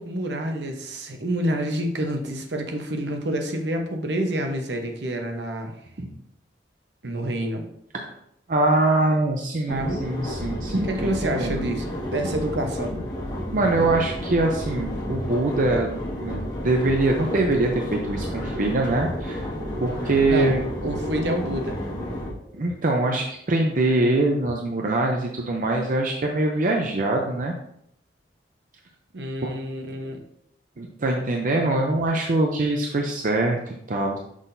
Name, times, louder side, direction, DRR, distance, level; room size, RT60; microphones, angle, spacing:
voice 1, 0.0-5.7 7.0-7.6 9.7-10.0 10.7-13.0 20.2-20.5 20.8-21.8 29.1-30.2, right 1 dB, 70° right, 4 dB, 0.9 m, -28 dB
voice 2, 8.5-11.6 13.5-19.5 19.8-20.6 22.5-27.5 29.4-29.5 30.8-34.2, right 2 dB, 50° right, 1 dB, 0.6 m, -23 dB
sound 1, 9.7-22.3, equal, 25° left, 1.9 m, -31 dB
sound 2, 17.1-23.5, left 2 dB, 15° right, 2.5 m, -44 dB
6.2 x 5.7 x 2.7 m, 0.73 s
head